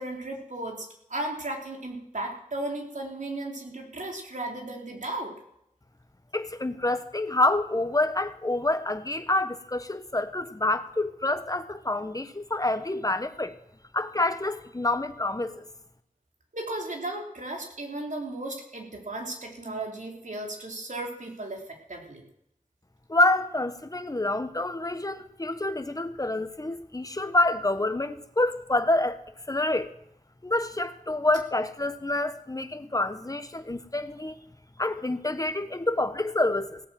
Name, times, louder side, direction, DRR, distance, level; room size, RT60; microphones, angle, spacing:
voice 1, 0.0-5.3 16.5-22.2, right 2 dB, 65° right, 3.6 m, -35 dB
voice 2, 6.3-13.5 13.9-15.7 23.1-29.2 29.5-29.9 30.4-34.4 34.8-36.8, left 2 dB, 25° left, 1.3 m, -27 dB
17.0 x 8.4 x 7.7 m
wide cardioid pair, 55°, 14 cm